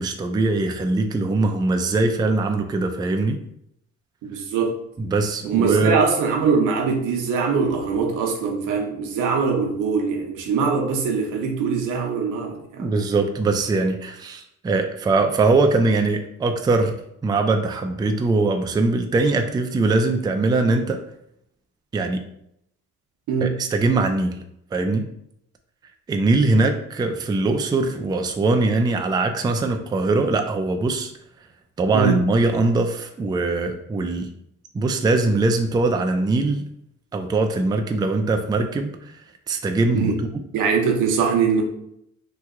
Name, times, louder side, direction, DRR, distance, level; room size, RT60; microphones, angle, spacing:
voice 1, 0.0-3.4 5.0-6.0 12.8-16.9 17.2-21.0 21.9-22.2 23.4-24.4 24.7-25.1 26.1-31.1 31.8-34.3 34.7-36.6 37.1-39.0 39.5-40.2, right 3 dB, 15° right, 5 dB, 0.3 m, -21 dB
voice 2, 4.2-4.8 5.4-12.9 23.3-23.6 31.9-32.2 39.9-40.2 40.5-41.6, right 5 dB, 85° right, 2 dB, 0.7 m, -22 dB
2.9 x 2.2 x 3.6 m, 0.76 s
cardioid pair, 90°, 30 cm